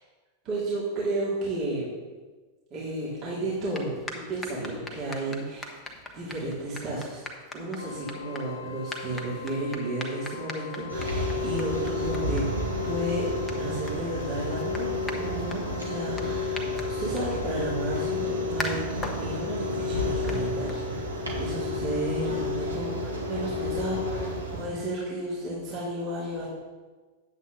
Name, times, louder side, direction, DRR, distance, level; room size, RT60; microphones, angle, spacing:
voice 1, 0.4-1.9 2.7-5.8 6.1-7.2 7.5-18.8 19.1-24.3 24.6-26.5, right 1 dB, 35° right, -8 dB, 2.7 m, -33 dB
sound 1, 3.5-21.3, left 2 dB, 15° left, 1.2 m, -42 dB
Wind instrument woodwind instrument, 7.7-18.3, left 5 dB, 75° left, 0.6 m, -43 dB
sound 2, 10.9-24.7, left 2 dB, 80° right, 1.7 m, -30 dB
9.4 x 7.9 x 3.8 m, 1.3 s
figure-of-eight pair, 90°, 0 cm